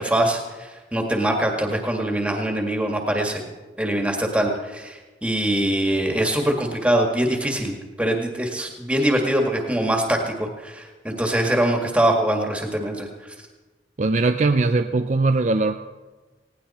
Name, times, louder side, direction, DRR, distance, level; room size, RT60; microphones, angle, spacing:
voice 1, 0.0-3.4 3.8-13.1, right 1 dB, 5° right, 2 dB, 1.9 m, -23 dB
voice 2, 14.0-15.7, right 3 dB, 40° right, 7 dB, 0.5 m, -20 dB
19.5 x 17.0 x 4.3 m, 1.2 s
head